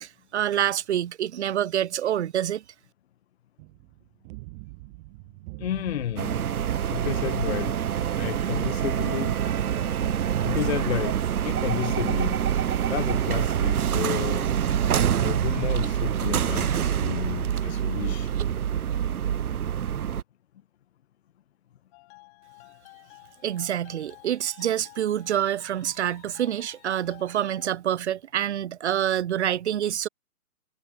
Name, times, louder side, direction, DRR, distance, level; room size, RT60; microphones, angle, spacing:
voice 1, 0.0-2.6 23.4-30.1, right 10 dB, 50° right, 0.5 m, -27 dB
sound 1, 3.6-13.2, right 27 dB, 30° right, 7.6 m, -42 dB
voice 2, 5.6-6.4 6.9-7.8 8.2-9.5 10.4-11.2 11.4-12.5 12.9-14.5 15.2-18.3, left 11 dB, 45° left, 0.9 m, -31 dB
sound 2, 6.2-20.2, right 9 dB, 75° right, 0.8 m, -26 dB
sound 3, 21.9-27.8, left 31 dB, 25° left, 1.6 m, -52 dB
figure-of-eight pair, 135°, 44 cm